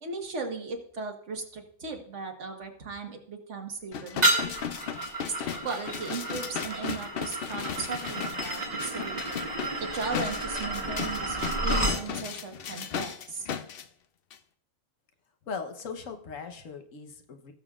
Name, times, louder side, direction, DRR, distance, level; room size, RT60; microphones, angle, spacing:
voice 1, 0.0-4.6 5.2-9.2 9.8-13.5, right 4 dB, 60° right, 4 dB, 1.7 m, -37 dB
sound 1, 3.9-13.8 14.3-14.4, left 8 dB, 55° left, 0.7 m, -36 dB
sound 2, 4.2-12.0, right 1 dB, 30° right, 1.5 m, -31 dB
voice 2, 15.5-17.5, left 5 dB, 75° left, 6 dB, 1.3 m, -39 dB
18.0 x 7.1 x 2.4 m, 0.68 s
omnidirectional pair, 1.4 m